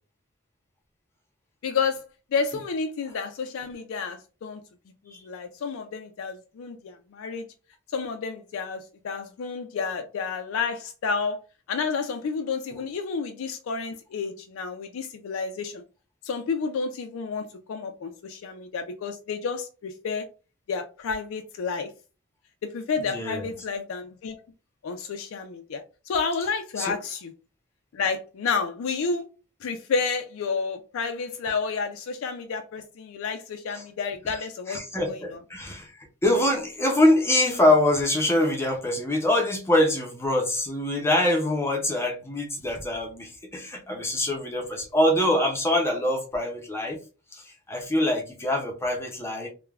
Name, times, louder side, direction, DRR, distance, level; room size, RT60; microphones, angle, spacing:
voice 1, 1.6-2.0 2.3-4.6 5.1-7.5 7.9-11.4 11.7-15.8 16.2-20.2 20.7-21.9 22.7-24.4 24.8-27.3 27.9-29.3 29.6-34.8 35.1-35.4, left 5 dB, 75° left, 0.3 m, -30 dB
voice 2, 23.1-23.5 26.8-26.9 33.8-33.9 34.7-47.0 47.3-49.5, left 1 dB, 10° left, 0.5 m, -24 dB
3.2 x 2.1 x 2.3 m
head